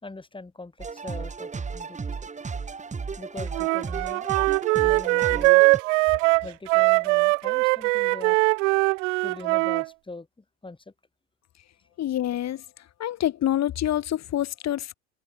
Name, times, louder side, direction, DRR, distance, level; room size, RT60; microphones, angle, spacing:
voice 1, 0.0-2.0 3.2-4.3 4.7-5.8 6.4-8.4 9.2-10.9, left 3 dB, 10° left, 4.2 m, -42 dB
sound 1, 0.8-5.8, right 5 dB, 20° right, 1.5 m, -34 dB
Wind instrument woodwind instrument, 3.5-9.9, right 26 dB, 70° right, 0.7 m, -21 dB
voice 2, 12.0-12.6 13.0-14.9, left 12 dB, 40° left, 1.7 m, -26 dB
hypercardioid pair, 75°, 40 cm